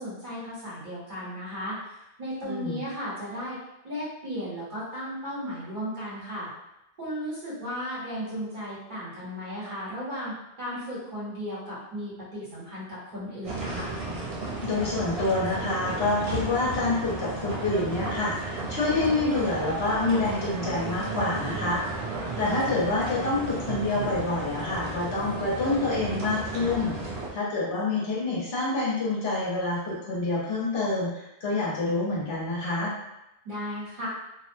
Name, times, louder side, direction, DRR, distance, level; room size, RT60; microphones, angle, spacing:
voice 1, 0.0-3.6 3.8-6.5 7.0-13.9 33.4-34.1, equal, 50° right, -9 dB, 1.0 m, -35 dB
voice 2, 2.4-2.8 14.6-21.8 22.4-27.0 27.3-32.9, left 2 dB, 70° left, -7 dB, 1.2 m, -27 dB
sound 1, 13.4-27.3, right 3 dB, 75° right, 0.9 m, -33 dB
2.6 x 2.0 x 2.5 m, 0.88 s
omnidirectional pair, 1.1 m